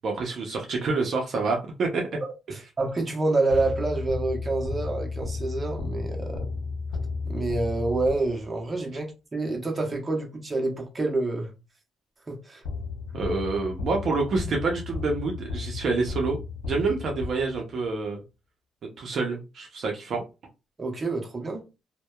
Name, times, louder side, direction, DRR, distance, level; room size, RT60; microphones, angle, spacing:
voice 1, 0.0-2.1 13.1-16.4 16.6-18.2 19.0-20.2, right 3 dB, 60° right, 0.6 m, -27 dB
voice 2, 2.8-6.5 7.3-11.5 12.3-12.6 20.8-21.7, right 2 dB, 25° right, 0.9 m, -27 dB
sound 1, 3.5-8.6 12.6-17.9, left 4 dB, 90° left, 0.5 m, -33 dB
2.6 x 2.1 x 2.2 m
cardioid pair, 90°, 0 cm